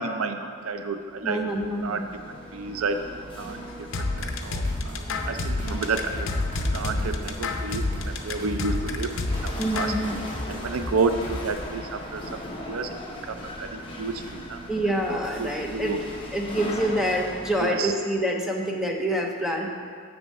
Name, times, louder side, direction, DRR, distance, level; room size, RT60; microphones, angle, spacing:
voice 1, 0.0-2.0 2.5-3.0 3.4-3.6 4.0-5.0 5.3-6.3 6.7-9.1 9.4-9.9 10.5-12.2 12.7-13.0 13.3-13.4 13.6-14.6 15.4-16.0 17.6-17.9, right 4 dB, 80° right, 7 dB, 0.5 m, -30 dB
Chatter / Hiss / Rattle, 0.8-17.7, left 1 dB, 25° left, 1.0 m, -39 dB
voice 2, 1.2-2.1 9.6-10.2 14.7-16.0 16.3-19.7, right 1 dB, ahead, 0 dB, 0.7 m, -26 dB
sound 1, 3.9-10.0, left 3 dB, 65° left, 0.6 m, -29 dB
sound 2, 4.2-11.7, left 1 dB, 35° right, 1.8 m, -36 dB
7.4 x 6.9 x 5.3 m, 2.2 s
head